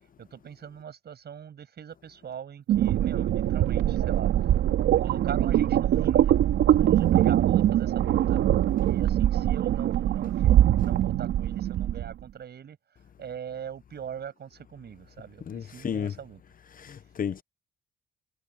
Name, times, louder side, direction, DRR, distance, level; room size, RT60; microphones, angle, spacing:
voice 1, 0.2-4.3 5.0-6.4 6.8-8.4 8.8-12.8 13.2-16.4, right 8 dB, 55° right, 6.8 m, -41 dB
sound 1, 2.7-12.1, right 12 dB, 80° right, 3.2 m, -23 dB
voice 2, 15.5-16.1 16.8-17.4, left 8 dB, 45° left, 0.9 m, -32 dB
cardioid pair, 90°, 20 cm